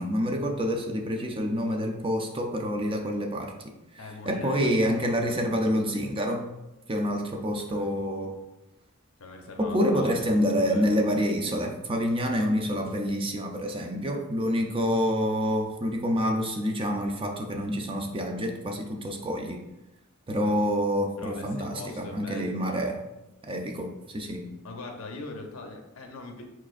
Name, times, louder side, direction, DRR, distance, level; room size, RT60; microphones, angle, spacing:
voice 1, 0.0-3.5 3.9-6.5 6.9-8.3 9.6-19.6 20.3-23.0 23.4-24.5, equal, 25° right, 2 dB, 0.5 m, -27 dB
voice 2, 4.0-6.0 7.7-8.0 9.2-11.1 14.5-14.7 20.4-20.5 21.2-22.8 24.6-26.5, left 2 dB, 75° left, 3 dB, 0.8 m, -42 dB
4.7 x 4.2 x 2.5 m, 0.97 s
head